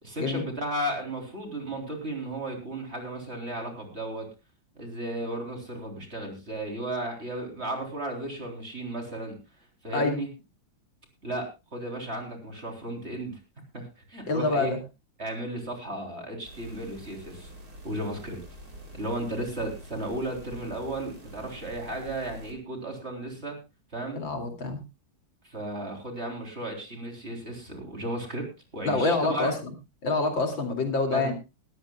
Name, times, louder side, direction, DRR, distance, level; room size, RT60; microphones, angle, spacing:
voice 1, 0.0-4.3 4.8-9.4 9.8-10.3 11.2-13.4 13.7-14.7 15.2-17.5 17.8-18.4 18.9-23.6 23.9-24.2 25.4-28.5 28.7-29.5 31.1-31.3, right 1 dB, 30° right, 2 dB, 3.9 m, -34 dB
voice 2, 14.3-14.8 24.1-24.8 28.8-29.5 30.0-31.3, left 3 dB, 75° left, 4 dB, 3.3 m, -26 dB
sound 1, 16.4-22.5, right 1 dB, 50° right, 3.8 m, -46 dB
21.0 x 13.5 x 2.3 m, 0.26 s
omnidirectional pair, 2.1 m